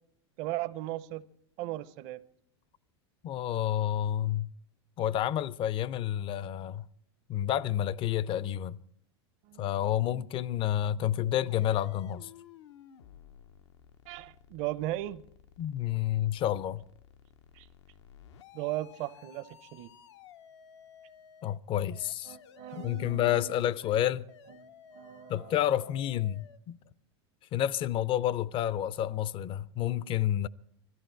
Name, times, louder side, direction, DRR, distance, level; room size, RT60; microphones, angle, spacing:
voice 1, 0.4-1.2 1.6-2.2 9.5-9.7 10.1-10.3 14.1-15.2 17.5-17.7 18.5-19.9 22.3-23.5 24.5-25.6, right 16 dB, 50° right, 0.7 m, -37 dB
voice 2, 3.2-4.5 5.0-6.9 7.3-8.8 9.6-12.3 15.6-16.8 21.4-22.4 22.7-24.3 25.3-26.8 27.5-30.5, left 11 dB, 35° left, 0.5 m, -29 dB
sound 1, 11.5-21.6 21.9-26.6, left 9 dB, 80° left, 0.8 m, -55 dB
21.0 x 14.0 x 4.5 m
hypercardioid pair, 110°, 15 cm